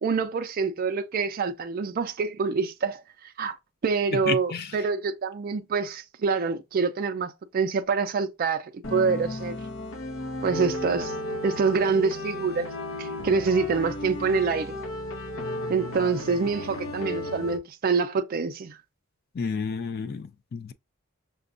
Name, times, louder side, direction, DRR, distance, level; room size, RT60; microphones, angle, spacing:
voice 1, 0.0-3.6 3.8-9.6 10.4-11.1 11.4-12.7 13.0-14.7 15.7-18.8, right 5 dB, 45° right, 0.4 m, -26 dB
voice 2, 4.1-4.7 19.4-20.7, left 5 dB, 50° left, 0.3 m, -31 dB
sound 1, 8.8-17.6, left 1 dB, 65° left, 0.7 m, -34 dB
5.8 x 2.2 x 2.5 m
head